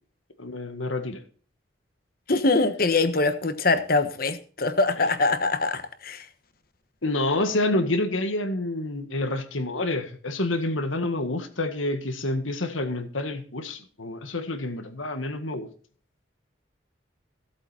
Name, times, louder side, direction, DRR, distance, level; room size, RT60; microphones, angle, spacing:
voice 1, 0.4-1.2 7.0-15.7, left 2 dB, 90° left, 1.7 m, -28 dB
voice 2, 2.3-6.3, left 3 dB, 50° left, 1.2 m, -23 dB
16.5 x 8.1 x 4.3 m
head